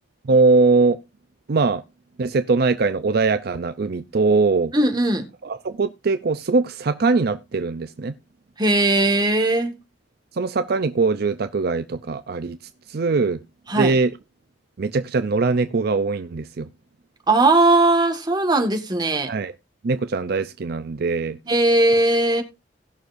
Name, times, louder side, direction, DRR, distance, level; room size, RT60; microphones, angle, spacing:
voice 1, 0.2-1.0 1.5-1.8 2.2-4.7 5.4-8.1 10.3-12.6 12.9-13.4 13.8-14.1 14.8-16.7 19.3-19.5 19.8-21.4, right 3 dB, 60° right, 0.5 m, -21 dB
voice 2, 4.7-5.2 8.6-9.8 13.7-14.0 17.3-19.3 21.5-22.4, right 2 dB, 25° right, 1.7 m, -18 dB
18.5 x 6.4 x 2.6 m
head